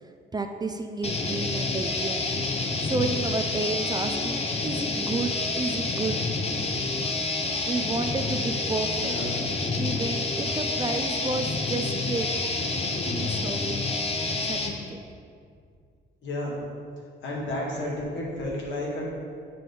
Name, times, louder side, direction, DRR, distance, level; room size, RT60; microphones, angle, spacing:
voice 1, 0.0-2.3 2.8-6.2 7.7-9.2 9.8-12.3 13.0-13.8 14.4-15.0, right 3 dB, 20° right, 5 dB, 0.4 m, -31 dB
sound 1, 1.0-14.7, left 3 dB, 30° left, 0.8 m, -28 dB
voice 2, 8.9-9.3 16.2-16.5 17.2-19.1, left 1 dB, 70° left, -4 dB, 1.8 m, -32 dB
7.6 x 5.0 x 3.8 m, 2.2 s
cardioid pair, 90°, 20 cm